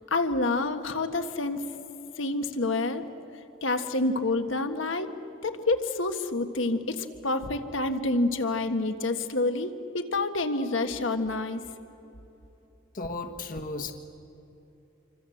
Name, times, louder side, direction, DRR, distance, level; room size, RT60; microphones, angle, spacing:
voice 1, 0.1-1.6 2.2-3.1 3.6-5.1 5.4-11.6, left 2 dB, 75° left, 7 dB, 1.6 m, -28 dB
voice 2, 12.9-13.9, left 3 dB, 45° left, 6 dB, 1.4 m, -34 dB
27.0 x 24.5 x 7.9 m, 2.9 s
head